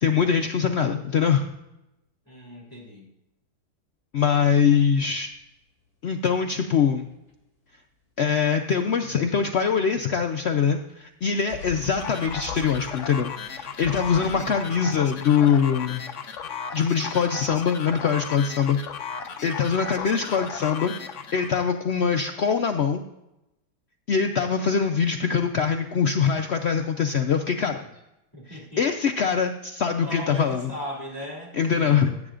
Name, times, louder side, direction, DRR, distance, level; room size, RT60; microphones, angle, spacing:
voice 1, 0.0-1.5 4.1-5.3 6.0-7.1 8.2-16.1 16.7-18.8 19.4-20.9 21.3-23.0 24.1-27.8 28.5-30.7 31.5-32.1, left 6 dB, 85° left, 5 dB, 0.5 m, -23 dB
voice 2, 2.3-3.1 28.3-28.8 30.0-32.2, equal, 10° left, -4 dB, 2.8 m, -39 dB
sound 1, 5.3-5.4 6.8-6.9 7.1-7.3 9.5-9.6 9.8-10.6 10.9-11.0 11.5-15.0, left 4 dB, 10° right, 2.7 m, -42 dB
sound 2, 12.0-21.7, left 6 dB, 55° left, 0.9 m, -36 dB
15.5 x 8.3 x 2.5 m, 0.89 s
omnidirectional pair, 1.9 m